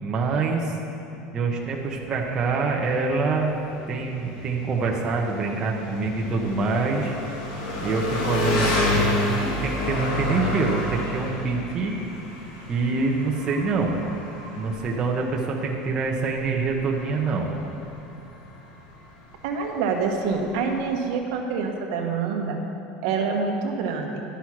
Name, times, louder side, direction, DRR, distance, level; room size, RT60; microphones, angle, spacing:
voice 1, 0.0-0.7 1.3-3.5 3.9-7.2 7.8-11.9 12.7-14.0 14.6-17.5, right 4 dB, 25° right, -1 dB, 0.8 m, -25 dB
Engine, 1.6-21.1, left 2 dB, 70° left, 1.8 m, -30 dB
voice 2, 19.4-22.6 23.0-24.2, right 5 dB, 70° right, 2 dB, 1.1 m, -26 dB
11.5 x 6.2 x 5.8 m, 2.9 s
cardioid pair, 165°, 3 cm